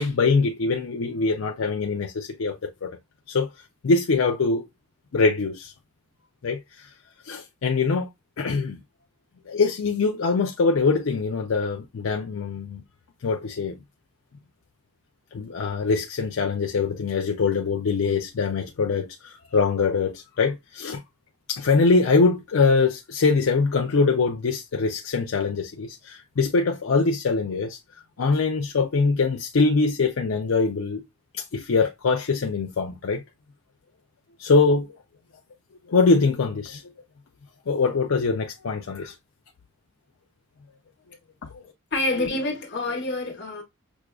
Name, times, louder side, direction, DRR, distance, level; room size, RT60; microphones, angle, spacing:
voice 1, 0.0-3.0 3.3-3.5 3.8-4.7 5.1-5.7 6.4-6.9 7.3-8.1 8.4-8.8 9.5-12.8 13.2-13.8 15.3-21.0 21.5-27.8 28.2-31.0 31.3-33.2 34.4-35.0 35.9-36.8 37.7-39.1 41.5-41.6, left 4 dB, 75° left, 0.5 m, -23 dB
voice 2, 41.9-43.6, left 2 dB, 55° left, 1.1 m, -27 dB
6.1 x 2.3 x 2.2 m
head